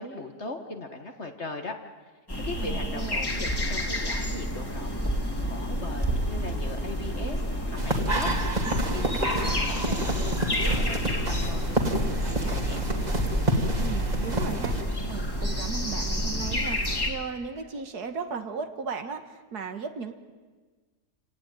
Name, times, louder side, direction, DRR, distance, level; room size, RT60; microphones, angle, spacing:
voice 1, 0.0-1.8 2.4-12.8, left 3 dB, 45° left, 5 dB, 1.9 m, -39 dB
sound 1, 2.3-17.1, equal, 15° left, 2.5 m, -29 dB
voice 2, 2.6-3.2 13.8-14.8 15.1-20.1, right 5 dB, 80° right, 7 dB, 2.0 m, -36 dB
sound 2, 7.8-14.8, right 1 dB, 25° right, 2.3 m, -28 dB
sound 3, 11.8-18.4, right 6 dB, 65° right, 2.1 m, -44 dB
27.5 x 18.0 x 9.3 m, 1.4 s
omnidirectional pair, 1.7 m